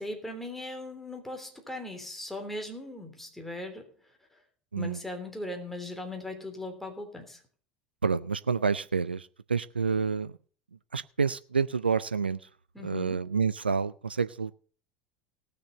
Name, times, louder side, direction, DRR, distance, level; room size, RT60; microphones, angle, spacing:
voice 1, 0.0-4.4 4.7-7.4 12.7-13.3, left 1 dB, 5° left, 3.3 m, -39 dB
voice 2, 8.0-10.3 10.9-12.4 12.8-14.6, right 5 dB, 90° right, 0.5 m, -28 dB
18.0 x 6.8 x 5.4 m
figure-of-eight pair, 70°, 5 cm